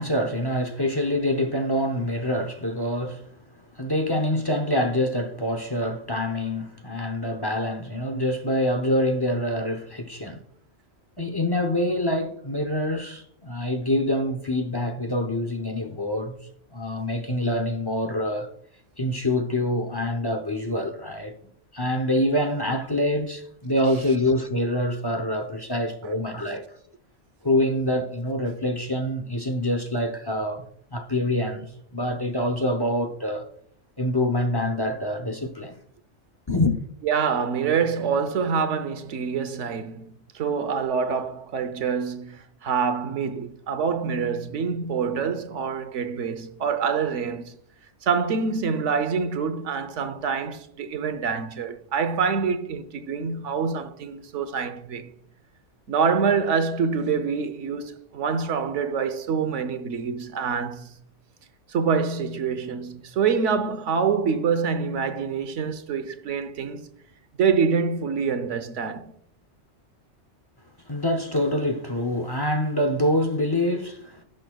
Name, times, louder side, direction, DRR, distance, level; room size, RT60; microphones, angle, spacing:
voice 1, 0.0-3.2 3.8-10.4 11.2-16.4 16.7-18.5 19.0-21.3 21.7-26.6 27.4-33.5 34.0-35.8 36.5-36.8 70.9-74.2, left 1 dB, 25° left, 0.7 m, -25 dB
voice 2, 37.0-47.6 48.0-55.1 55.9-60.9 61.7-66.9 67.4-69.1, right 6 dB, 90° right, 1.2 m, -26 dB
17.5 x 6.3 x 2.3 m
omnidirectional pair, 1.2 m